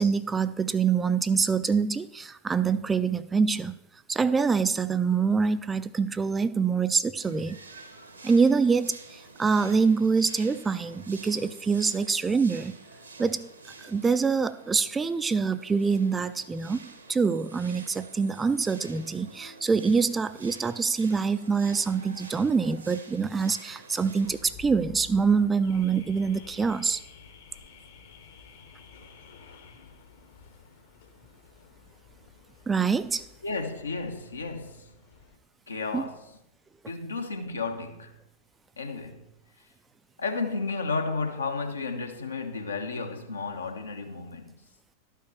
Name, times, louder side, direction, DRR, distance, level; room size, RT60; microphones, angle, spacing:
voice 1, 0.0-3.8 4.1-7.6 8.2-12.8 13.2-13.5 13.8-27.0 32.7-33.2 35.9-36.1, right 5 dB, 15° right, 0.3 m, -25 dB
sound 1, 7.2-24.4, right 3 dB, 75° right, 1.2 m, -48 dB
Car / Alarm, 24.2-35.4, left 5 dB, 60° left, 1.3 m, -51 dB
voice 2, 33.4-34.9 35.7-36.3 36.9-38.2 38.8-39.3 40.2-44.6, left 4 dB, 75° left, 1.0 m, -33 dB
12.0 x 5.8 x 4.3 m
figure-of-eight pair, 90°, 0 cm